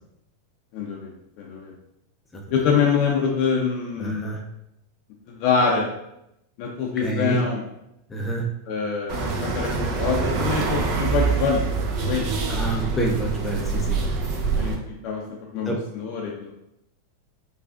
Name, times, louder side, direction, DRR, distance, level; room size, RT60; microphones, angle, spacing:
voice 1, 0.7-1.1 1.4-1.7 2.5-4.3 5.3-5.9 6.6-7.6 8.7-11.6 12.0-12.3 14.6-15.2 15.5-16.5, left 5 dB, 55° left, -1 dB, 0.6 m, -25 dB
voice 2, 4.0-4.4 7.0-7.4 8.1-8.4 12.5-14.0 15.7-15.8, right 1 dB, 15° left, -1 dB, 0.6 m, -27 dB
sound 1, 9.1-14.7, right 4 dB, 50° right, 0.9 m, -25 dB
4.8 x 2.4 x 2.4 m, 0.83 s
hypercardioid pair, 115°, 0 cm